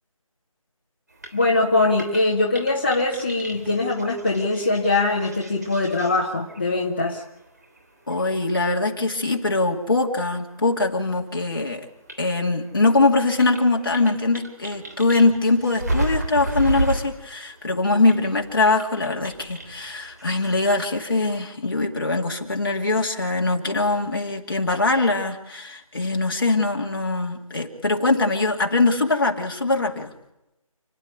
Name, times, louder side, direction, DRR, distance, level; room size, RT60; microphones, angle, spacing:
sound 1, 1.1-11.1 11.4-20.7, right 1 dB, 30° right, 3.0 m, -34 dB
voice 1, 1.3-7.2, left 2 dB, 15° left, -3 dB, 1.2 m, -22 dB
voice 2, 8.1-11.9 12.2-30.1, left 3 dB, 40° left, 1 dB, 2.4 m, -22 dB
29.0 x 11.0 x 9.6 m, 0.90 s
figure-of-eight pair, 175°, 18 cm